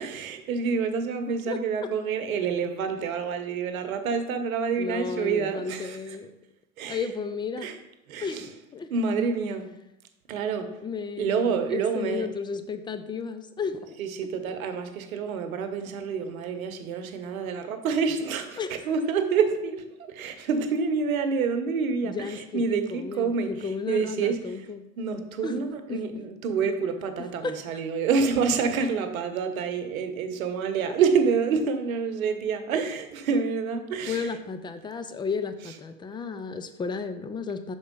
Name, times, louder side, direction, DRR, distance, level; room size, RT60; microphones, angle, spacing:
voice 1, 0.0-6.2 6.8-7.1 7.6-7.8 8.1-8.5 8.9-9.7 10.3-10.7 11.2-12.3 14.0-24.7 25.0-34.3, right 5 dB, 85° right, 8 dB, 1.0 m, -28 dB
voice 2, 1.3-1.9 4.8-6.3 6.9-7.7 8.2-8.9 10.8-14.0 18.6-18.9 22.0-24.8 25.4-25.6 25.9-26.0 27.2-27.6 34.1-37.8, left 5 dB, 10° left, 9 dB, 0.4 m, -33 dB
5.7 x 4.5 x 5.2 m, 0.88 s
hypercardioid pair, 100°, 41 cm